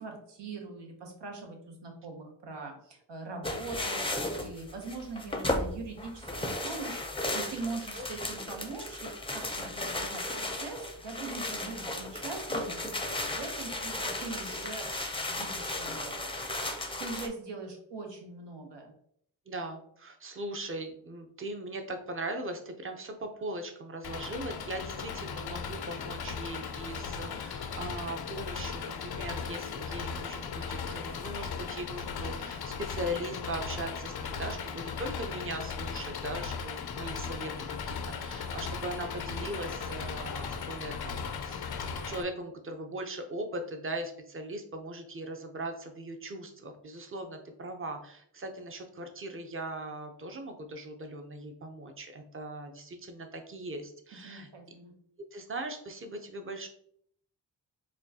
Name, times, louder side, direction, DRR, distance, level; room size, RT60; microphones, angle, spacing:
voice 1, 0.0-12.9 13.3-18.9 54.2-54.9, right 3 dB, 80° right, 3 dB, 0.9 m, -42 dB
sound 1, 3.4-17.3, left 1 dB, 15° left, 0.5 m, -35 dB
voice 2, 19.5-54.5 55.3-56.7, right 1 dB, 30° right, 5 dB, 0.6 m, -39 dB
Engine, 24.0-42.2, left 6 dB, 65° left, 0.5 m, -37 dB
4.2 x 2.3 x 2.7 m, 0.67 s
cardioid pair, 45°, 42 cm